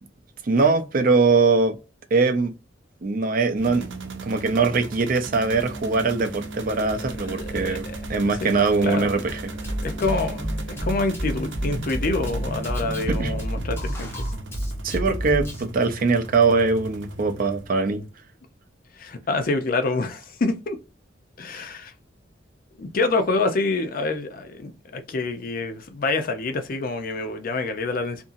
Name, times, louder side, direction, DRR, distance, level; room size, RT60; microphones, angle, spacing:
voice 1, 0.4-1.8 2.1-2.5 3.0-3.9 4.2-9.5 13.1-13.3 14.8-18.1 21.6-21.7, right 4 dB, 50° right, 0.5 m, -22 dB
sound 1, 3.6-18.1, right 2 dB, 85° right, 0.7 m, -37 dB
voice 2, 7.2-7.9 8.4-9.1 9.6-14.2 19.0-20.8 21.4-21.9 22.8-28.2, left 3 dB, 50° left, 0.5 m, -27 dB
Drum kit, 9.6-15.6, equal, 15° left, 0.8 m, -29 dB
2.7 x 2.6 x 2.5 m
head